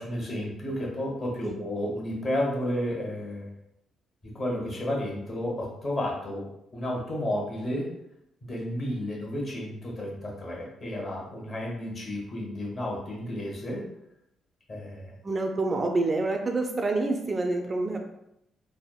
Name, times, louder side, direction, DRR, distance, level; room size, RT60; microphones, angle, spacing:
voice 1, 0.0-3.5 4.2-8.0 8.4-13.8 14.7-15.2, left 1 dB, 45° left, -2 dB, 1.2 m, -32 dB
voice 2, 15.2-18.1, right 2 dB, 30° right, 3 dB, 0.3 m, -27 dB
3.4 x 2.1 x 2.3 m, 0.82 s
cardioid pair, 90°, 0 cm